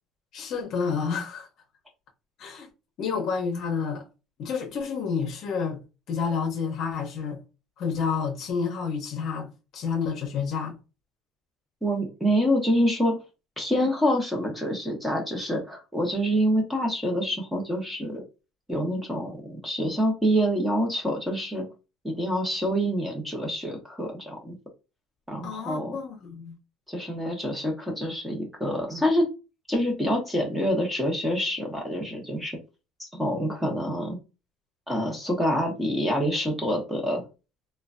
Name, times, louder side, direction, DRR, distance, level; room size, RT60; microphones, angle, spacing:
voice 1, 0.3-1.5 2.4-2.7 3.0-4.1 4.4-5.8 6.1-7.4 7.8-10.7 25.4-26.6, left 6 dB, 55° left, 0.7 m, -29 dB
voice 2, 11.8-13.1 13.6-18.2 18.7-21.7 22.0-24.6 25.3-26.0 26.9-29.3 29.7-32.6 33.0-34.2 34.9-37.2, equal, 5° right, 0.8 m, -26 dB
3.1 x 2.2 x 2.5 m
cardioid pair, 130°, 0 cm